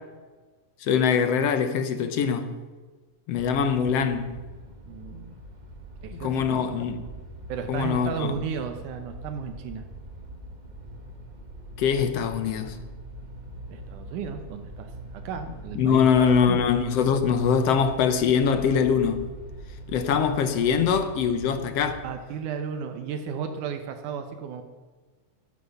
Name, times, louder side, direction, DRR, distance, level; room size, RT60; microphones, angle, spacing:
voice 1, 0.8-2.6 3.3-4.4 6.1-7.0 7.7-8.4 11.8-12.8 15.8-19.3 19.9-22.0, left 7 dB, 65° left, 1.8 m, -23 dB
sound 1, 3.3-22.1, right 1 dB, 25° right, 1.1 m, -42 dB
voice 2, 4.9-5.4 6.0-6.8 7.5-9.9 13.7-16.7 22.0-24.6, right 6 dB, 80° right, 2.4 m, -34 dB
12.0 x 11.0 x 6.9 m
omnidirectional pair, 3.5 m